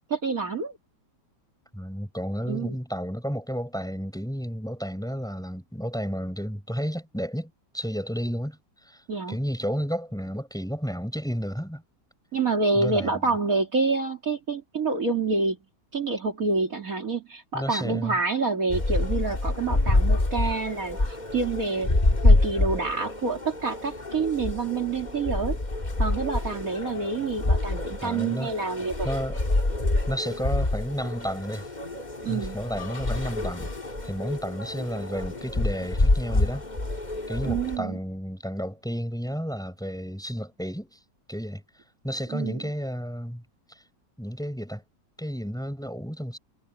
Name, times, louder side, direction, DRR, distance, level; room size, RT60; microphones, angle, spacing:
voice 1, 0.1-0.8 2.5-2.8 9.1-9.4 12.3-15.6 15.9-21.0 21.3-21.9 22.2-25.6 26.0-29.1 32.2-32.6 37.4-38.0 42.3-42.6, right 4 dB, 50° right, 2.9 m, -27 dB
voice 2, 1.7-11.8 12.7-13.2 17.5-18.2 28.0-28.5 29.0-29.4 30.1-31.7 32.3-36.7 37.3-41.0 41.3-41.6 42.0-43.4 43.7-43.8 44.2-44.8 45.2-46.4, equal, ahead, 6.8 m, -32 dB
sound 1, 18.7-37.8, left 2 dB, 25° left, 2.2 m, -27 dB
omnidirectional pair, 1.9 m